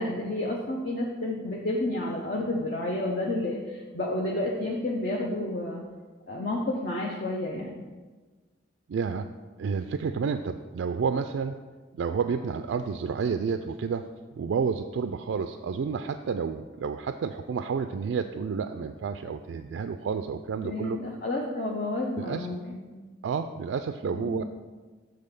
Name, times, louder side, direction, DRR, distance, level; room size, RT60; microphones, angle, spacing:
voice 1, 0.0-5.8 6.3-7.7 20.6-22.8 24.1-24.4, left 1 dB, 50° left, -3 dB, 0.8 m, -30 dB
voice 2, 8.9-9.3 9.6-11.6 11.9-14.1 14.3-21.0 22.2-22.5 23.2-24.4, right 6 dB, 85° right, 8 dB, 0.3 m, -30 dB
7.6 x 3.8 x 6.7 m, 1.3 s
head